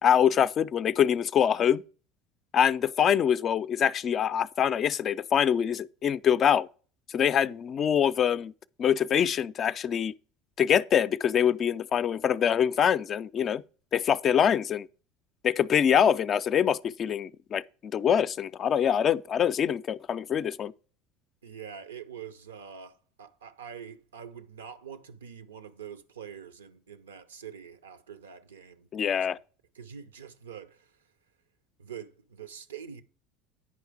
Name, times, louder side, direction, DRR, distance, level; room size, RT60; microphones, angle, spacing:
voice 1, 0.0-1.8 2.5-6.7 7.1-8.5 8.8-10.1 10.6-13.6 13.9-14.9 15.4-20.7 28.9-29.4, left 8 dB, 40° left, 0.4 m, -24 dB
voice 2, 21.4-29.3 29.7-30.9 31.8-33.0, right 8 dB, 85° right, 0.6 m, -45 dB
9.6 x 4.9 x 4.8 m
hypercardioid pair, 70°, 0 cm